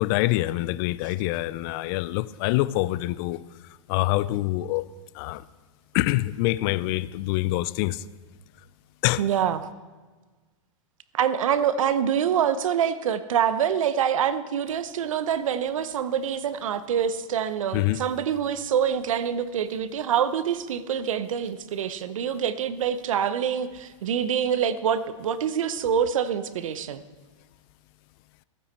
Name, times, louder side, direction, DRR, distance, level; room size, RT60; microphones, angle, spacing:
voice 1, 0.0-3.4 3.9-4.8 5.1-5.4 5.9-8.0 9.0-9.2 17.7-18.0, left 17 dB, 45° left, 17 dB, 0.4 m, -25 dB
voice 2, 9.2-9.7 11.1-27.0, right 8 dB, 80° right, 13 dB, 0.8 m, -25 dB
15.0 x 9.2 x 4.3 m, 1.3 s
hypercardioid pair, 125°, 17 cm